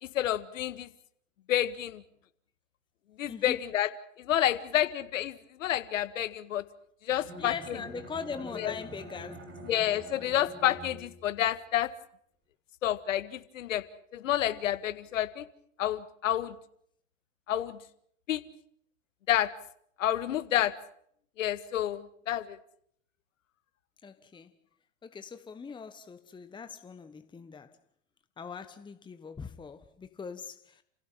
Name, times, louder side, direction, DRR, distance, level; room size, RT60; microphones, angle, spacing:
voice 1, 0.0-0.9 1.5-2.0 3.2-3.9 4.2-6.6 7.0-7.8 8.5-8.7 9.6-11.9 12.8-13.8 14.1-15.5 15.8-16.6 17.5-17.8 18.3-18.4 19.3-19.5 20.0-20.7 21.4-22.6, left 12 dB, 75° left, 1.8 m, -29 dB
Bowed string instrument, 7.1-11.4, equal, 30° right, 6.1 m, -46 dB
voice 2, 7.4-9.4 24.0-24.5 25.0-27.7 28.4-30.8, left 5 dB, 10° left, 1.2 m, -41 dB
29.5 x 16.0 x 7.4 m
hypercardioid pair, 110°, 39 cm